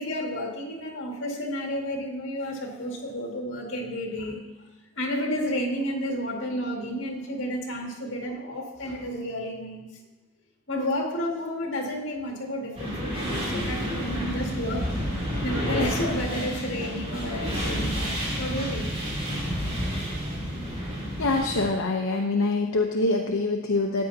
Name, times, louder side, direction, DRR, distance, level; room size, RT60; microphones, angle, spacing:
voice 1, 0.0-4.4 5.0-9.9 10.7-14.9 15.4-19.0, equal, 65° left, 0 dB, 2.2 m, -31 dB
sound 1, 12.7-21.7, equal, 30° right, 2.9 m, -30 dB
voice 2, 21.2-24.1, left 2 dB, 80° left, 1 dB, 0.8 m, -25 dB
14.0 x 9.5 x 2.8 m, 1.1 s
head